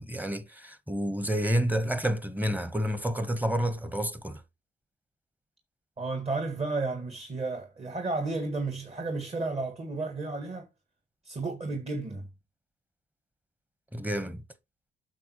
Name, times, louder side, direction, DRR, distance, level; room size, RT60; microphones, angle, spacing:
voice 1, 0.0-4.4 13.9-14.4, equal, 10° right, 1.1 m, -29 dB
voice 2, 6.0-10.7 11.2-12.3, right 3 dB, 35° right, 1.8 m, -32 dB
8.5 x 6.2 x 3.0 m
cardioid pair, 90°, 18 cm